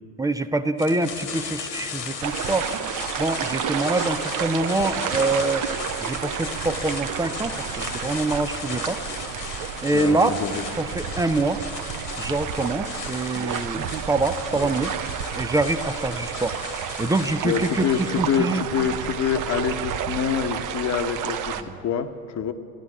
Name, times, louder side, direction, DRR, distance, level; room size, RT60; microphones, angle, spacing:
voice 1, 0.2-2.7 3.2-5.7 6.0-9.0 9.8-10.3 10.8-11.6 12.2-14.9 15.4-16.6 17.0-17.9 18.2-18.6 21.5-21.7, right 2 dB, 10° right, 11 dB, 0.4 m, -25 dB
sound 1, 0.8-18.5, left 6 dB, 90° left, 1.8 m, -37 dB
sound 2, 2.2-21.6, right 8 dB, 40° right, 0.8 m, -31 dB
voice 2, 9.9-10.7 17.4-22.5, left 7 dB, 35° left, 9 dB, 1.0 m, -26 dB
14.0 x 10.5 x 8.3 m, 2.5 s
hypercardioid pair, 80°, 47 cm